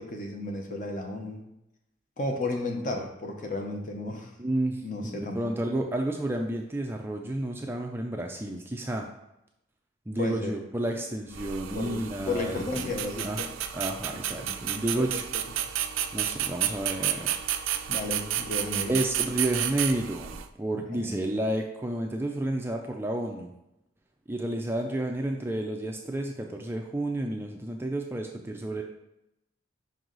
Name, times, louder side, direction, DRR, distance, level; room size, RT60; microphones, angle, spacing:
voice 1, 0.0-1.4 2.2-4.3 4.8-5.4 10.2-10.5 11.7-13.5 14.1-14.5 14.9-15.4 17.9-18.9 20.9-21.3, left 2 dB, 40° left, 3 dB, 0.9 m, -33 dB
voice 2, 4.4-9.1 10.1-12.9 13.2-13.4 13.7-15.2 16.1-17.3 18.9-23.5 24.3-28.8, right 1 dB, 10° right, 2 dB, 0.4 m, -31 dB
sound 1, 11.3-20.5, right 10 dB, 85° right, 0.4 m, -31 dB
5.4 x 4.6 x 3.9 m, 0.86 s
head